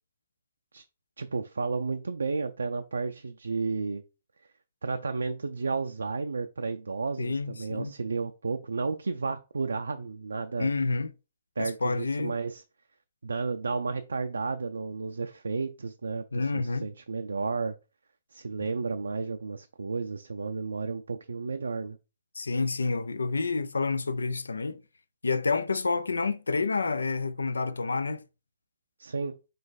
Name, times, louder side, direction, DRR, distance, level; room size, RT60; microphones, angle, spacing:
voice 1, 1.2-4.0 4.8-10.7 11.6-12.6 13.2-17.7 18.3-22.0 29.0-29.4, right 4 dB, 85° right, 0.3 m, -32 dB
voice 2, 7.2-7.9 10.6-11.1 11.6-12.4 16.3-16.9 22.4-24.8 25.2-28.2, left 4 dB, 90° left, 0.4 m, -29 dB
3.9 x 3.2 x 4.0 m
hypercardioid pair, 130°, 0 cm